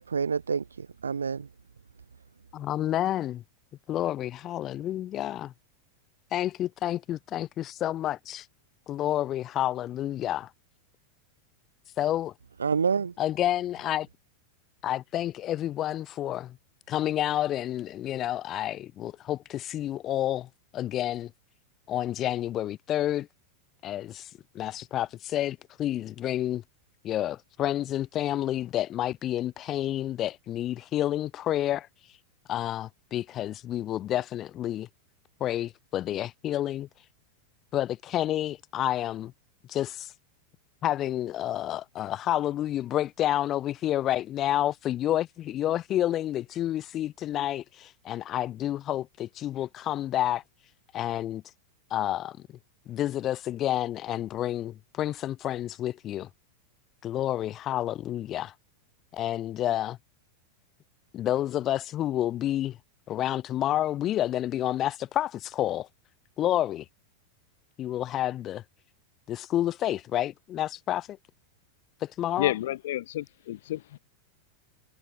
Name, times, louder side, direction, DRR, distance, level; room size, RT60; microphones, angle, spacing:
voice 1, 0.0-1.5 12.6-13.1, right 6 dB, 75° right, 1.9 m, -28 dB
voice 2, 2.5-3.4 3.9-5.5 6.3-8.4 8.9-10.5 12.0-12.3 13.2-14.1 14.8-16.6 16.9-21.3 21.9-23.3 23.8-24.3 24.5-26.6 27.0-31.9 32.5-34.9 35.4-36.9 37.7-39.3 39.7-40.1 40.8-50.4 50.9-51.4 51.9-52.4 52.9-56.3 57.0-58.5 59.1-60.0 61.1-62.8 63.1-65.9 66.4-66.8 67.8-68.6 69.3-71.2 72.0-72.5, left 12 dB, 30° left, 2.7 m, -29 dB
voice 3, 72.4-74.0, left 14 dB, 55° left, 5.2 m, -30 dB
figure-of-eight pair, 90°, 0 cm